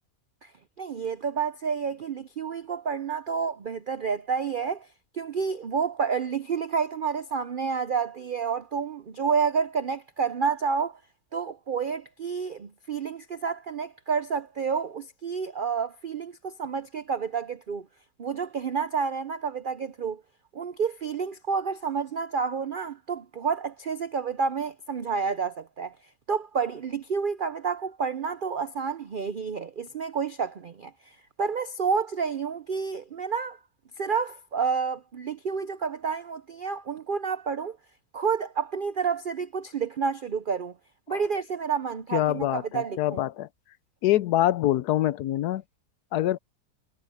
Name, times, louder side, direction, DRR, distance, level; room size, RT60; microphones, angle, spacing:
voice 1, 0.8-4.9 5.1-11.0 11.3-17.9 18.2-20.2 20.5-25.9 26.3-33.6 34.0-37.8 38.1-40.7 41.1-43.2, right 6 dB, 80° right, 0.4 m, -29 dB
voice 2, 42.1-43.5 44.0-45.6 46.1-46.4, left 14 dB, 75° left, 1.2 m, -25 dB
omnidirectional pair, 1.7 m